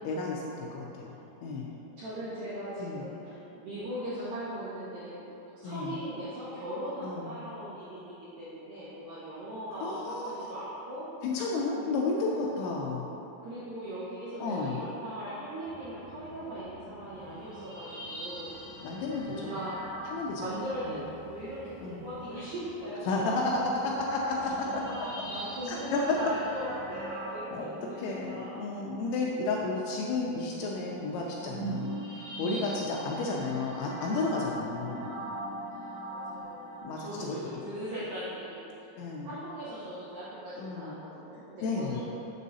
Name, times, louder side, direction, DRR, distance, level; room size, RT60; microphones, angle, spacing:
voice 1, 0.0-1.1 1.4-1.7 2.8-3.0 5.6-6.0 7.0-7.3 9.7-10.5 11.2-13.1 14.4-14.8 18.8-19.5 20.1-20.4 20.8-21.0 21.8-22.0 23.1-24.8 25.7-26.2 27.5-27.7 28.0-35.1 36.8-37.5 39.0-39.3 40.6-40.9 41.6-42.0, left 3 dB, 85° left, -2 dB, 2.7 m, -32 dB
voice 2, 2.0-5.3 5.5-11.1 11.7-11.9 13.4-18.5 19.3-19.8 20.1-23.7 24.4-28.6 36.1-36.7 37.0-42.0, right 1 dB, 85° right, -10 dB, 2.0 m, -39 dB
sound 1, 15.6-27.1, equal, 70° left, 2.1 m, -54 dB
sound 2, 17.1-21.1 23.4-36.8, right 2 dB, 65° right, 3.0 m, -42 dB
7.3 x 6.8 x 2.7 m, 2.9 s
omnidirectional pair, 5.7 m